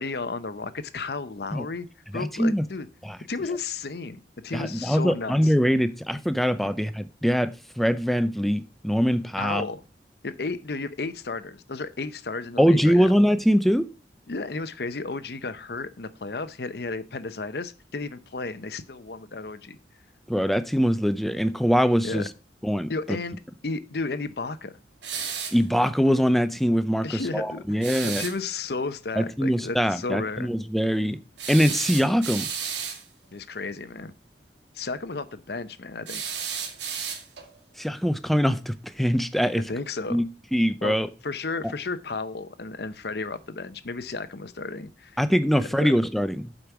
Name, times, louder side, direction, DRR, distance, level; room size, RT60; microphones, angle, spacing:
voice 1, 0.0-1.9 2.1-2.9 3.3-5.5 9.4-9.8 10.2-13.2 14.3-19.8 22.0-22.3 22.9-24.7 27.0-30.5 33.3-34.1 34.7-36.2 39.7-40.2 40.8-41.0 41.2-45.2 45.5-45.9, left 3 dB, 60° left, 0.8 m, -33 dB
voice 2, 2.1-2.6 3.0-3.2 4.5-9.6 12.6-13.9 20.3-22.3 22.6-23.2 25.5-28.2 29.2-31.2 31.5-32.5 37.8-39.6 40.1-40.2 40.5-41.1 45.2-46.5, equal, ahead, 0.5 m, -23 dB
sound 1, 25.0-25.6 27.8-28.4 31.4-33.0 36.1-37.5, right 7 dB, 90° right, 2.1 m, -32 dB
8.0 x 5.2 x 6.0 m
head